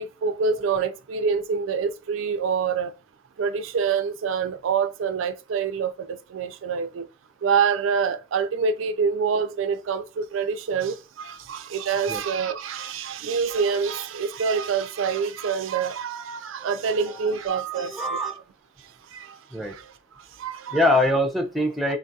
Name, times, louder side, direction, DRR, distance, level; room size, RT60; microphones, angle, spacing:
voice 1, 0.0-2.9 3.4-7.1 7.4-18.2 19.1-19.4 19.7-19.9 20.4-20.8, right 6 dB, 75° right, 0.4 m, -26 dB
voice 2, 17.5-18.4 19.5-19.7 20.7-22.0, left 1 dB, ahead, 0.6 m, -24 dB
3.8 x 2.4 x 2.6 m
head